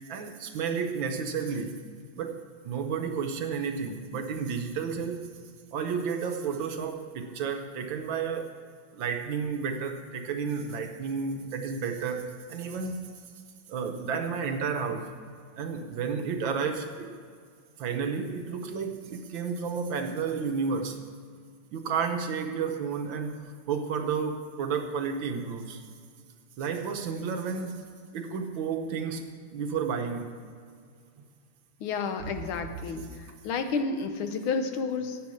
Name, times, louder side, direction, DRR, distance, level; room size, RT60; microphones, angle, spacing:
voice 1, 0.1-1.8 2.2-5.3 5.7-8.5 8.9-13.1 13.7-15.1 15.6-17.1 17.8-21.0 21.7-23.3 23.7-25.8 26.6-27.8 28.1-30.3 32.2-32.3, right 6 dB, 70° right, 5 dB, 1.5 m, -31 dB
voice 2, 31.8-35.2, left 4 dB, 80° left, 8 dB, 1.7 m, -31 dB
10.5 x 8.4 x 6.3 m, 2.1 s
omnidirectional pair, 2.3 m